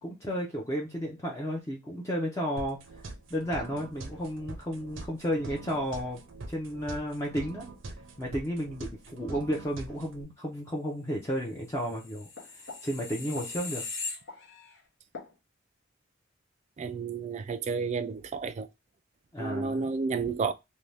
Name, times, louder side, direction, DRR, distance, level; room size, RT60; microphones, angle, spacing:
voice 1, 0.0-2.8 3.3-6.2 6.5-7.7 8.2-12.3 12.8-13.8 19.3-19.9, equal, 15° left, 0.6 m, -32 dB
sound 1, 2.6-10.2, right 2 dB, 75° right, 0.6 m, -44 dB
sound 2, 11.8-14.8 15.1-15.3, left 4 dB, 65° left, 0.8 m, -39 dB
voice 2, 16.8-18.7 19.4-20.5, right 4 dB, 35° right, 0.3 m, -31 dB
2.6 x 2.2 x 3.2 m
head